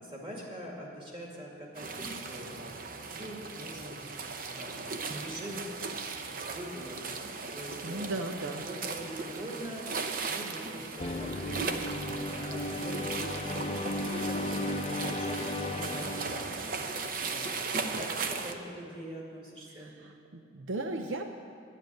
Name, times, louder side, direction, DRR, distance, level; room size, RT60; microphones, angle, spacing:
voice 1, 0.0-2.7 3.1-4.0 4.3-5.7 6.1-6.2 6.5-7.0 7.5-8.2 8.6-11.7 12.3-16.4 16.8-17.5 17.9-20.0, equal, 25° right, -2 dB, 2.3 m, -43 dB
sound 1, 1.7-18.5, right 4 dB, 45° right, 0.7 m, -37 dB
voice 2, 7.8-8.7 19.7-21.2, right 2 dB, 80° right, 4 dB, 0.7 m, -36 dB
sound 2, 11.0-17.4, left 2 dB, 30° left, 0.6 m, -35 dB
10.5 x 7.5 x 9.3 m, 2.3 s
head